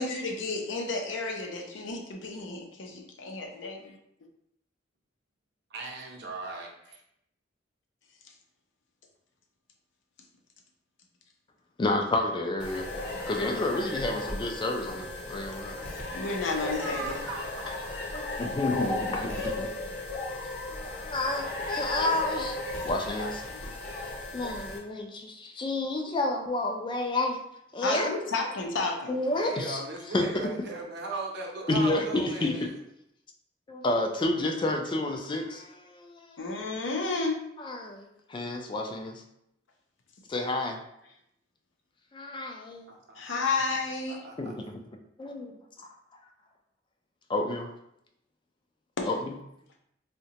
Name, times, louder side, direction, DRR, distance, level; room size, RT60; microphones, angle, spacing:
voice 1, 0.0-4.0 16.1-17.2 23.2-23.6 27.8-29.1 36.4-37.5 43.2-44.3 49.0-49.1, left 3 dB, 75° left, 2 dB, 0.5 m, -32 dB
voice 2, 5.7-7.0 16.8-18.3 29.3-32.7 42.9-43.8 44.1-44.5, right 2 dB, 60° right, 0 dB, 0.6 m, -38 dB
voice 3, 11.8-12.9 13.3-15.8 18.1-19.8 20.7-22.6 22.8-23.4 24.3-27.4 27.7-28.1 29.1-29.8 30.1-30.5 31.7-32.7 33.7-36.6 37.6-39.2 40.3-40.8 42.1-42.9 44.4-44.8 45.2-45.4 47.3-47.7 49.1-49.3, left 2 dB, 25° left, 3 dB, 0.3 m, -30 dB
sound 1, 12.6-24.8, left 2 dB, 40° left, 0.8 m, -35 dB
3.6 x 2.1 x 2.8 m, 0.78 s
head